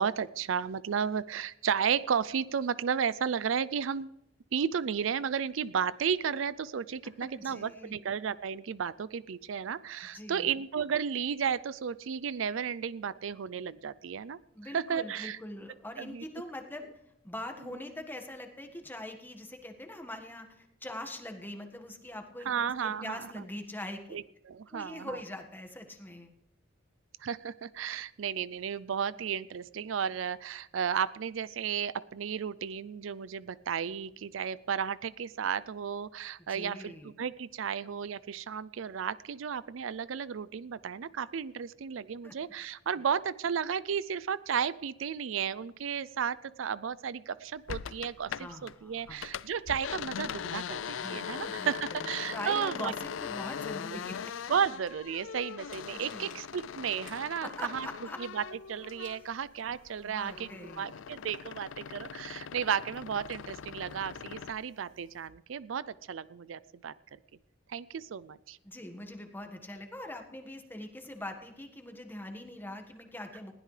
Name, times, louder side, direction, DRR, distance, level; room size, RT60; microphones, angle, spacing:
voice 1, 0.0-4.2 4.5-14.4 14.7-15.4 16.0-16.2 22.5-23.4 24.1-25.2 27.2-52.9 54.5-57.9 58.2-60.5 60.8-66.9 67.7-68.6, right 7 dB, 75° right, 18 dB, 0.4 m, -33 dB
voice 2, 7.3-7.9 10.1-10.6 14.5-16.9 17.2-24.0 24.7-26.3 36.5-37.1 42.2-42.3 48.4-49.3 51.0-54.3 55.9-56.3 57.4-58.2 60.0-61.0 68.6-73.5, left 1 dB, 10° left, 5 dB, 1.6 m, -43 dB
sound 1, 47.7-48.7 49.0-59.4 59.7-64.6, left 7 dB, 70° left, 0.4 m, -41 dB
sound 2, 55.7-65.3, left 4 dB, 45° left, 2.8 m, -63 dB
20.5 x 15.5 x 3.3 m, 0.84 s
head